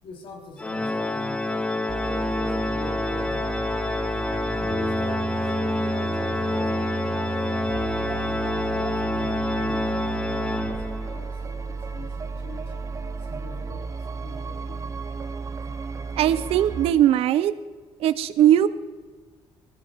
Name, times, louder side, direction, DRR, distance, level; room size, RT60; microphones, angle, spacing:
voice 1, 0.0-3.6 4.5-7.2 7.9-12.8 13.2-14.8, left 3 dB, 60° left, 1 dB, 3.2 m, -44 dB
Organ, 0.6-11.3, left 2 dB, 10° left, 0.6 m, -27 dB
sound 1, 1.9-16.9, right 5 dB, 30° right, 0.8 m, -33 dB
voice 2, 16.2-17.5 18.0-18.7, right 11 dB, 80° right, 14 dB, 0.7 m, -19 dB
20.5 x 15.0 x 3.6 m, 1.4 s
cardioid pair, 115°, 10 cm